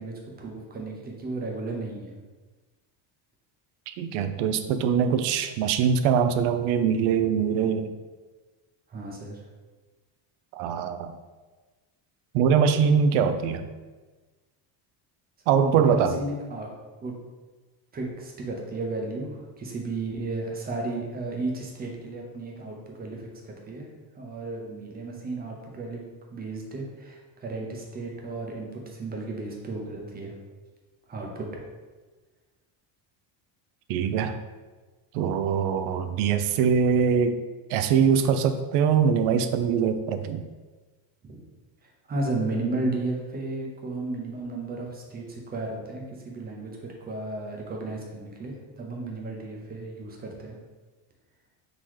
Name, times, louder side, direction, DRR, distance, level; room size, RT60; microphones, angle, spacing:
voice 1, 0.0-2.2 8.9-9.4 15.5-16.7 17.0-17.1 17.9-23.9 24.2-26.0 26.3-30.3 31.1-31.5 41.2-41.4 41.8-50.6, right 2 dB, 20° right, 0 dB, 0.6 m, -34 dB
voice 2, 4.0-7.9 10.5-11.1 12.3-13.7 15.5-16.2 33.9-34.4 35.1-37.4 37.7-40.4, right 7 dB, 80° right, 9 dB, 0.6 m, -23 dB
3.9 x 2.8 x 4.6 m, 1.3 s
cardioid pair, 165°, 49 cm